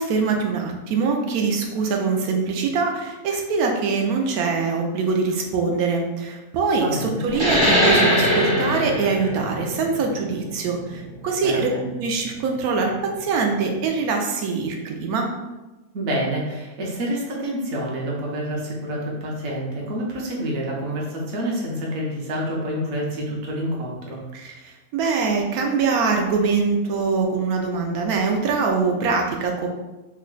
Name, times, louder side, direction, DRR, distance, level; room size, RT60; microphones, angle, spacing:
voice 1, 0.0-11.7 12.0-15.3 24.3-29.7, right 4 dB, 75° right, 2 dB, 1.0 m, -23 dB
voice 2, 6.8-7.2 11.4-11.8 15.9-24.2, equal, 55° right, -3 dB, 1.0 m, -28 dB
sound 1, 7.3-12.5, left 1 dB, 25° right, 0.7 m, -22 dB
3.2 x 2.2 x 3.7 m, 1.1 s
omnidirectional pair, 1.6 m